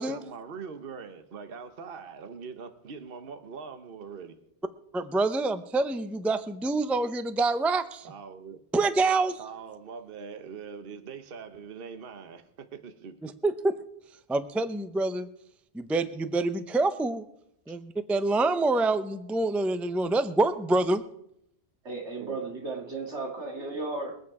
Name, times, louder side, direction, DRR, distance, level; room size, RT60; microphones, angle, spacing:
voice 1, 0.0-4.3 8.0-8.6 9.4-13.2 22.2-22.5, right 5 dB, 55° right, 9 dB, 1.1 m, -42 dB
voice 2, 4.9-8.1 8.7-9.4 13.2-13.8 14.3-15.3 15.7-17.3 17.7-21.0, right 2 dB, ahead, 12 dB, 0.4 m, -26 dB
voice 3, 21.8-24.2, right 3 dB, 85° right, 1 dB, 2.8 m, -35 dB
22.5 x 8.4 x 4.8 m, 0.75 s
omnidirectional pair, 1.1 m